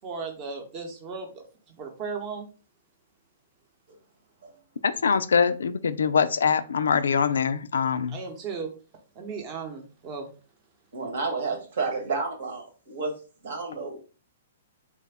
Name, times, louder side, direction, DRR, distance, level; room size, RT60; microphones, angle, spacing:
voice 1, 0.0-2.5 8.1-8.7 9.1-10.3, right 5 dB, 30° right, 0.8 m, -36 dB
voice 2, 4.8-8.2, left 6 dB, 90° left, 0.3 m, -23 dB
voice 3, 10.9-13.1 13.4-14.0, right 4 dB, 65° right, 1.2 m, -31 dB
3.3 x 2.1 x 3.4 m
hypercardioid pair, 150°, 0 cm